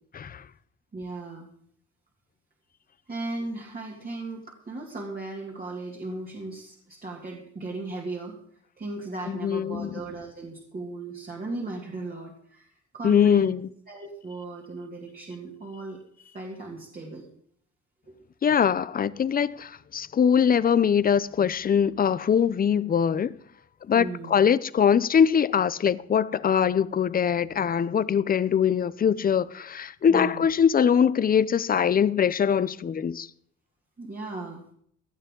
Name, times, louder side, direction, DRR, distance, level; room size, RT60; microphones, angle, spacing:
voice 1, 0.1-0.4 9.3-9.9 13.0-13.7 18.4-23.4 23.9-33.3, left 7 dB, 30° left, 0.5 m, -22 dB
voice 2, 0.9-1.5 3.1-8.4 8.8-13.5 13.9-16.0 16.3-17.2 18.1-18.2 23.9-24.4 30.1-30.5 34.0-34.6, right 2 dB, 30° right, 2.3 m, -36 dB
17.5 x 12.5 x 3.7 m
cardioid pair, 140°, 29 cm